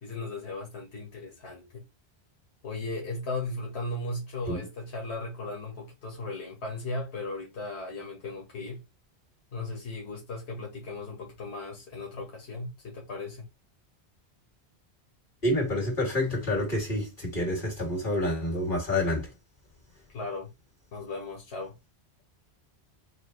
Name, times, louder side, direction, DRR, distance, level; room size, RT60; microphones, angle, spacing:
voice 1, 0.0-1.8 2.6-8.8 9.5-13.5 20.1-20.5 20.9-21.8, left 2 dB, 90° left, 1.7 m, -36 dB
voice 2, 15.4-19.3, left 1 dB, 50° left, 2.8 m, -28 dB
6.3 x 2.6 x 3.2 m
omnidirectional pair, 1.1 m